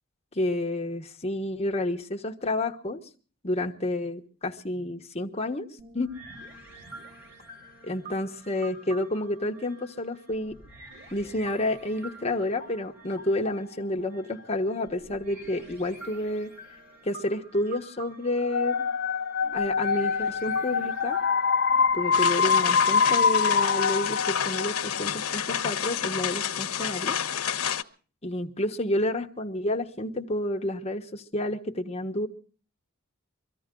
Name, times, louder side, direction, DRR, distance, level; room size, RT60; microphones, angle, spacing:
voice 1, 0.3-3.0 3.4-5.7 5.9-6.1 7.8-10.6 11.1-16.5 17.0-18.9 19.5-21.2 21.9-27.2 28.2-32.3, left 1 dB, 30° left, 3 dB, 1.2 m, -30 dB
sound 1, 5.8-24.0, right 2 dB, 50° right, 6.1 m, -47 dB
sound 2, 18.4-25.2, left 5 dB, 50° left, 0.8 m, -25 dB
sound 3, 22.1-27.8, left 8 dB, 85° left, 1.1 m, -29 dB
24.0 x 15.0 x 3.8 m, 0.40 s
head